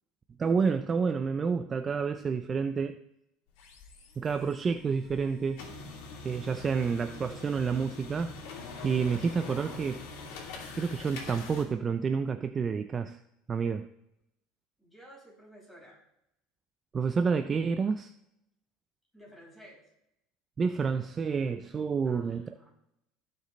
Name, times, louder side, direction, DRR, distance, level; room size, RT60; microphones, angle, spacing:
voice 1, 0.4-3.0 4.2-5.6 6.2-8.3 8.8-10.0 10.7-13.2 13.5-13.9 16.9-18.1 20.6-22.5, right 5 dB, 25° right, 10 dB, 0.4 m, -29 dB
sound 1, 3.5-11.6, left 3 dB, 75° left, 2.6 m, -44 dB
voice 2, 14.8-16.0 19.1-19.9 22.0-22.7, equal, 5° left, -4 dB, 4.9 m, -54 dB
17.5 x 6.7 x 3.2 m, 0.82 s
cardioid pair, 150°, 0 cm